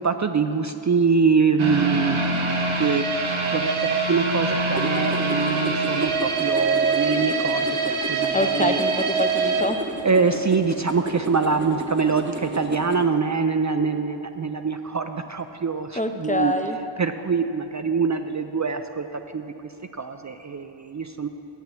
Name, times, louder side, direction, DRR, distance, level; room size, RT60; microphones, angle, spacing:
voice 1, 0.0-3.2 3.5-8.8 10.0-16.5 17.0-19.0 19.3-19.4 20.0-21.3, right 5 dB, 40° right, 7 dB, 0.4 m, -24 dB
sound 1, 1.6-10.6 10.9-11.0 11.5-11.6, right 3 dB, 85° right, 1.0 m, -25 dB
sound 2, 4.8-13.0, right 2 dB, 25° right, 0.9 m, -33 dB
voice 2, 8.3-9.8 16.0-16.8, left 1 dB, 15° left, 6 dB, 0.6 m, -25 dB
9.0 x 7.4 x 7.5 m, 3.0 s
wide cardioid pair, 50°, 47 cm